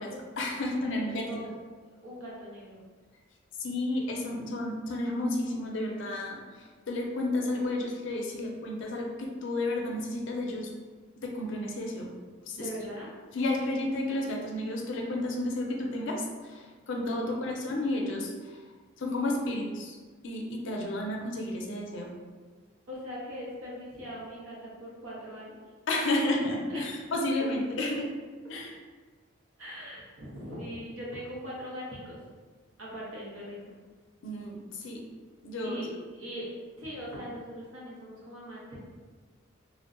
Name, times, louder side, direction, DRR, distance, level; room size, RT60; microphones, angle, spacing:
voice 1, 0.4-1.3 3.6-10.7 11.2-12.1 12.5-12.7 13.3-18.6 19.0-20.0 20.2-22.1 25.9-28.1 28.5-28.8 34.2-35.0 35.4-35.8, left 1 dB, 65° left, 0 dB, 0.4 m, -32 dB
voice 2, 0.9-1.5 1.9-2.8 12.6-13.1 17.2-17.6 22.9-25.6 26.7-27.0 27.4-27.5 29.6-32.2 32.8-33.7 35.6-36.5 36.8-38.8, equal, 80° right, -5 dB, 0.8 m, -41 dB
2.6 x 2.1 x 2.5 m, 1.4 s
head